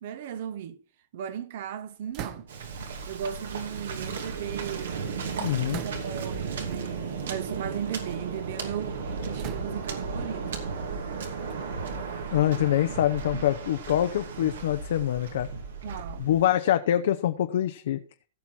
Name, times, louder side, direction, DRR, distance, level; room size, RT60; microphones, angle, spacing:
voice 1, 0.0-0.8 1.1-2.5 3.1-5.1 5.6-10.6 15.8-16.3, right 9 dB, 60° right, 0.9 m, -36 dB
sound 1, 2.1-2.8 3.7-4.8 5.7-6.4 7.2-7.4 7.9-8.6 9.4-10.1 10.9-12.8, right 9 dB, 40° right, 1.0 m, -42 dB
Waves surf, 2.5-16.4, right 5 dB, 85° right, 2.6 m, -35 dB
voice 2, 5.4-5.8 12.3-15.5 16.2-18.0, left 11 dB, 70° left, 0.8 m, -25 dB
15.5 x 6.1 x 4.4 m
hypercardioid pair, 145°, 0 cm